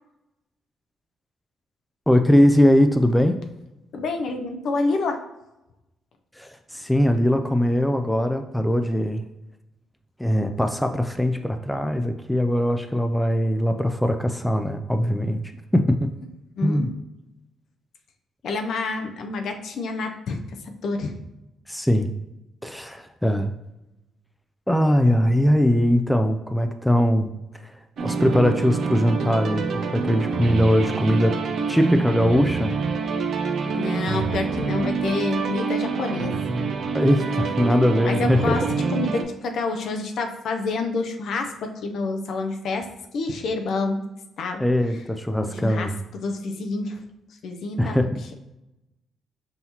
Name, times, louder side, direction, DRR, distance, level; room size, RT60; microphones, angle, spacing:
voice 1, 2.1-3.4 6.4-9.2 10.2-15.4 15.7-16.1 16.6-16.9 21.7-22.1 22.6-23.5 24.7-27.3 27.6-27.7 28.0-31.4 31.7-32.8 36.9-38.6 44.6-46.0 47.8-48.2, equal, 5° left, 7 dB, 0.3 m, -21 dB
voice 2, 3.9-5.2 16.6-16.9 18.4-20.4 20.8-21.1 33.6-36.4 38.0-38.6 38.9-42.9 43.1-44.0 44.4-44.6 45.4-47.0 47.4-48.1, left 3 dB, 70° left, 4 dB, 0.5 m, -28 dB
sound 1, 28.0-39.2, right 4 dB, 60° right, 0.4 m, -26 dB
5.6 x 2.8 x 2.9 m, 0.93 s
cardioid pair, 90°, 0 cm